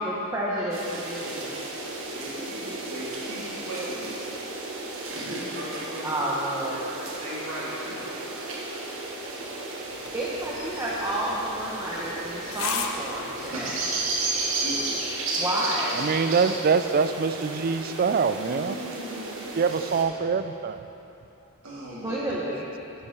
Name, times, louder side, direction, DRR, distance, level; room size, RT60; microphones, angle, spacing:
voice 1, 0.0-1.6 6.0-6.8 10.1-13.8 15.4-16.0 22.0-22.6, right 1 dB, 15° right, -6 dB, 0.9 m, -30 dB
sound 1, 0.7-20.0, right 2 dB, 65° right, 1.4 m, -33 dB
voice 2, 2.1-4.2 5.1-6.2 7.2-8.6 8.9-9.0 9.5-9.6 10.1-10.2 13.5-13.6 14.2-15.3 18.4-19.2 21.6-22.2, right 1 dB, 85° right, -6 dB, 2.6 m, -38 dB
sound 2, 9.9-14.9, left 7 dB, 75° left, 0.7 m, -39 dB
voice 3, 16.0-18.8 19.6-20.8, right 5 dB, 40° right, 11 dB, 0.3 m, -24 dB
10.5 x 5.9 x 6.4 m, 3.0 s
head